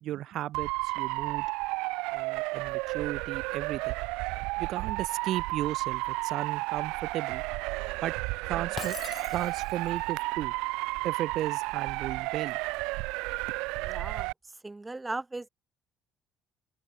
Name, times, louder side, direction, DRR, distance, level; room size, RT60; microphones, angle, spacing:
voice 1, 0.0-1.5 2.1-3.9 4.6-7.4 8.0-8.1 8.4-9.0 9.3-10.5 11.0-12.6, right 13 dB, 65° right, 1.0 m, -35 dB
Motor vehicle (road) / Siren, 0.5-14.3, right 25 dB, 90° right, 0.9 m, -32 dB
Shatter, 8.8-10.0, left 7 dB, 40° left, 7.4 m, -41 dB
voice 2, 13.8-14.3 14.6-15.5, right 2 dB, 15° right, 1.5 m, -37 dB
open air
cardioid pair, 110°, 0 cm